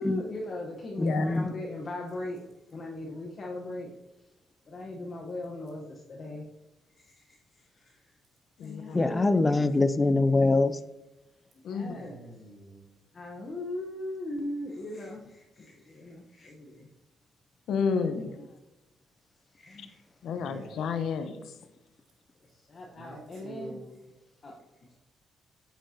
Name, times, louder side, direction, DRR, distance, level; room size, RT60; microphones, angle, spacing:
voice 1, 0.0-2.4 2.7-3.9 4.7-6.4 7.0-7.4 7.8-8.0 8.6-9.3 11.7-12.2 13.1-16.9 18.4-18.5 19.6-20.0 22.7-23.8 24.4-24.6, left 1 dB, 40° left, -1 dB, 1.1 m, -38 dB
voice 2, 1.0-1.5 8.9-10.8, left 2 dB, 20° left, 12 dB, 0.5 m, -24 dB
voice 3, 8.6-9.0 11.6-11.9 17.7-18.3 20.2-21.4, left 5 dB, 70° left, 8 dB, 0.9 m, -30 dB
voice 4, 11.9-12.8 20.4-20.9 23.0-24.0, right 2 dB, 75° right, -2 dB, 2.8 m, -46 dB
8.7 x 7.4 x 2.8 m, 0.96 s
cardioid pair, 90°, 0 cm